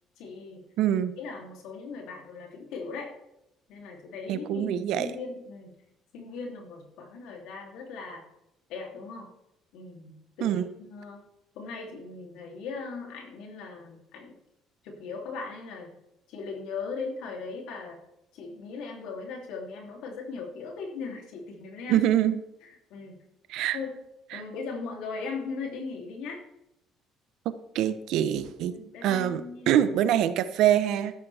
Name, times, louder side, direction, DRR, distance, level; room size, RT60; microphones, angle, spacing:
voice 1, 0.2-0.7 1.2-3.1 3.7-5.8 6.1-8.2 8.7-9.3 9.7-10.6 10.9-11.2 11.5-14.4 14.8-16.0 16.3-18.0 18.3-22.0 22.6-23.2 23.7-23.9 24.3-26.4 28.6-29.8, left 4 dB, 80° left, 1 dB, 3.0 m, -39 dB
voice 2, 0.8-1.1 4.3-5.1 10.4-10.7 21.9-22.3 23.5-23.8 24.3-24.4 27.4-28.7 29.0-29.4 29.7-31.1, right 11 dB, 75° right, 12 dB, 0.9 m, -24 dB
12.5 x 10.5 x 3.5 m, 0.85 s
cardioid pair, 105°, 0 cm